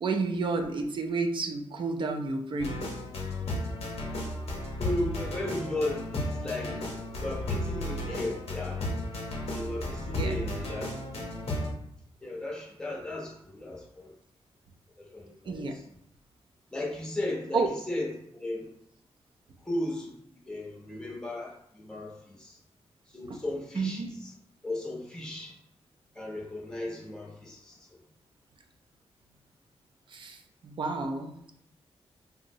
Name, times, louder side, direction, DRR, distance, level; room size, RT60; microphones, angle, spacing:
voice 1, 0.0-2.7 10.2-10.4 15.5-15.8 17.5-17.7 23.3-23.4 23.8-24.1 30.1-30.4 30.6-31.3, right 3 dB, 50° right, 4 dB, 0.3 m, -30 dB
sound 1, 2.6-11.7, left 1 dB, 80° left, 0.7 m, -34 dB
voice 2, 4.8-6.8 7.2-8.8 9.5-10.9 12.2-14.1 15.0-15.8 16.7-18.7 19.6-22.6 23.1-24.3 24.6-25.6 26.2-27.8, left 1 dB, 5° left, -2 dB, 0.6 m, -35 dB
3.7 x 2.1 x 2.6 m, 0.74 s
wide cardioid pair, 135°, 10 cm